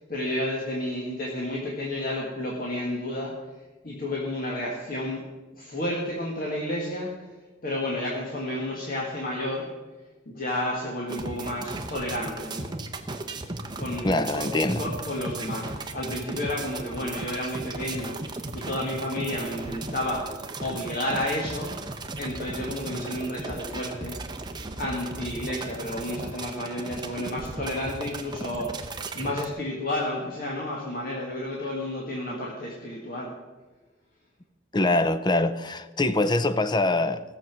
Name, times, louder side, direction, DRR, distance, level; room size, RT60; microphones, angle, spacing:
voice 1, 0.0-3.3 3.8-5.2 5.5-7.3 7.6-9.7 10.3-12.7 13.7-20.3 20.6-21.8 22.2-24.2 24.8-33.3, left 1 dB, 50° left, 1.8 m, -31 dB
sound 1, 11.1-29.5, right 2 dB, 25° right, 0.9 m, -36 dB
voice 2, 14.0-14.8 34.7-37.2, left 2 dB, 25° left, 0.5 m, -24 dB
16.5 x 7.0 x 6.1 m
head